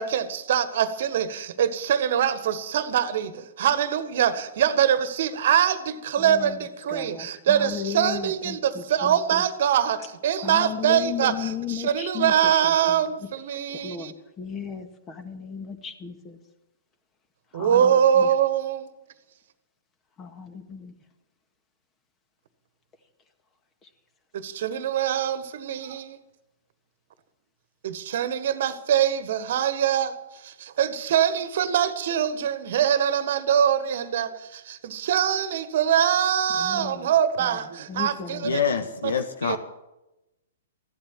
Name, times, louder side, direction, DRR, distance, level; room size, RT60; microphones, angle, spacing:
voice 1, 0.0-14.1 17.5-18.9 24.3-26.2 27.8-38.6 39.0-39.1 39.4-39.6, right 9 dB, 55° right, 1.5 m, -24 dB
voice 2, 6.2-9.4 10.4-12.5 12.9-13.0 13.7-16.4 17.5-18.3 20.2-20.9 36.6-37.1 37.4-37.5 37.9-38.6, left 7 dB, 20° left, 1.9 m, -35 dB
voice 3, 38.4-39.6, left 6 dB, 70° left, 1.4 m, -26 dB
15.5 x 12.0 x 7.4 m
figure-of-eight pair, 115°, 0 cm